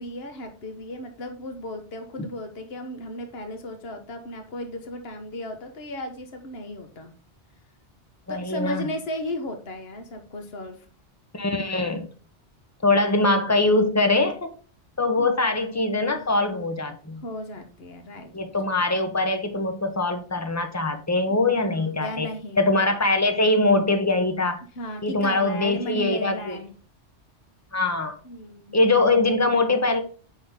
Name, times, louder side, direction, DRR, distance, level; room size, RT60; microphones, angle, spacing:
voice 1, 0.0-7.1 8.3-10.9 15.2-15.3 17.2-18.3 21.8-22.7 24.7-26.7 28.2-28.8, left 1 dB, 60° left, 5 dB, 1.5 m, -35 dB
voice 2, 8.3-8.9 11.3-12.1 12.8-14.5 15.0-17.2 18.3-22.3 22.6-24.6 25.0-26.6 27.7-28.2 28.7-30.0, left 2 dB, 15° left, 7 dB, 1.0 m, -22 dB
9.4 x 4.0 x 3.6 m, 0.41 s
omnidirectional pair, 1.2 m